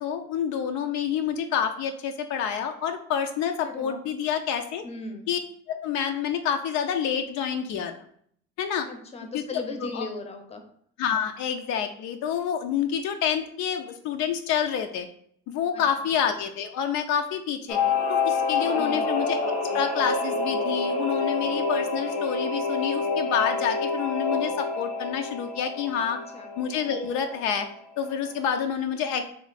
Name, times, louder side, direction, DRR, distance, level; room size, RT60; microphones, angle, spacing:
voice 1, 0.0-4.8 5.3-5.4 5.7-7.9 8.6-8.9 9.3-9.4 9.8-10.0 11.0-15.1 15.5-19.4 19.7-26.2 26.6-27.7 28.0-29.3, left 8 dB, 70° left, 6 dB, 0.5 m, -28 dB
voice 2, 3.6-4.0 4.8-5.3 8.9-10.6 15.7-15.8 18.8-19.1 26.3-26.5, left 3 dB, 20° left, 6 dB, 0.6 m, -37 dB
Singing / Musical instrument, 17.7-27.7 28.0-28.1, left 4 dB, 85° left, 0.9 m, -28 dB
3.1 x 2.7 x 4.0 m, 0.64 s
cardioid pair, 105°, 29 cm